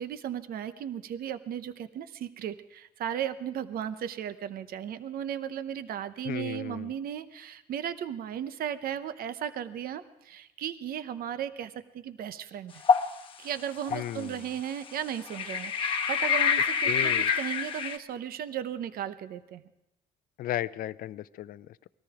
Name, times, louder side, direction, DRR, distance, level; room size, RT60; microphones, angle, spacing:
voice 1, 0.0-12.8 13.4-19.6, right 9 dB, 60° right, 12 dB, 0.8 m, -36 dB
voice 2, 6.2-6.9 13.9-14.5 16.8-17.3 20.4-21.8, left 13 dB, 60° left, 16 dB, 0.5 m, -35 dB
sound 1, 12.8-13.1 13.9-14.0 15.3-18.0, left 6 dB, 30° left, 1.1 m, -26 dB
20.0 x 13.5 x 4.9 m, 0.90 s
cardioid pair, 110°, 17 cm